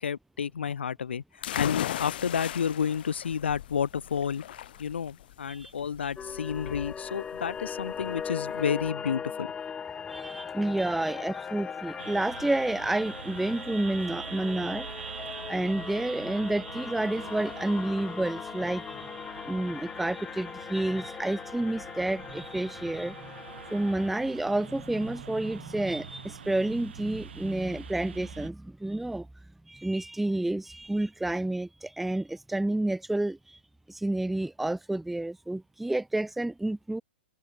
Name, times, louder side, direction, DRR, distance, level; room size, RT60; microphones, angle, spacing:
voice 1, 0.0-4.4 4.8-9.5, left 7 dB, 75° left, 1.1 m, -30 dB
sound 1, 1.4-8.9, left 12 dB, 55° left, 1.3 m, -37 dB
sound 2, 6.2-24.2, left 7 dB, 15° left, 1.7 m, -39 dB
voice 2, 10.1-14.9 15.5-19.1 19.5-23.2 23.7-29.3 29.7-33.6 33.9-37.0, right 1 dB, ahead, 0.3 m, -30 dB
sound 3, 12.0-28.5, right 7 dB, 70° right, 4.2 m, -44 dB
hypercardioid pair, 125°, 6 cm